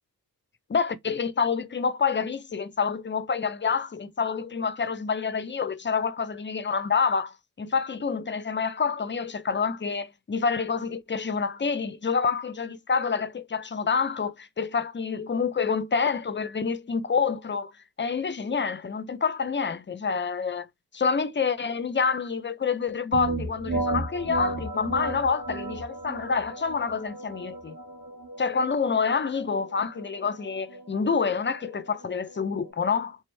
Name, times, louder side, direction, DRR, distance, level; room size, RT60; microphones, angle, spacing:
voice 1, 0.7-17.7 18.0-20.7 20.9-27.8 28.4-33.2, left 5 dB, 30° left, 0.4 m, -27 dB
sound 1, 23.1-32.7, right 2 dB, 50° right, 2.3 m, -34 dB
3.4 x 3.1 x 3.0 m
wide cardioid pair, 135°, 38 cm